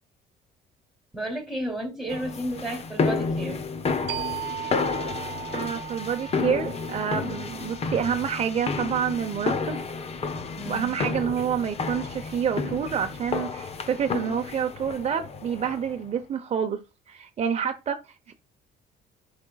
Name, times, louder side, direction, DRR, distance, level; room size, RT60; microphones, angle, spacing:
voice 1, 1.1-3.6 10.5-11.0, right 1 dB, ahead, 3.1 m, -32 dB
sound 1, 2.1-16.0, left 4 dB, 40° left, 1.0 m, -31 dB
sound 2, 4.1-9.4, right 11 dB, 80° right, 0.9 m, -38 dB
voice 2, 5.5-9.8 10.7-16.8 17.1-18.3, right 8 dB, 40° right, 0.8 m, -28 dB
13.5 x 5.2 x 2.3 m
cardioid pair, 110°, 17 cm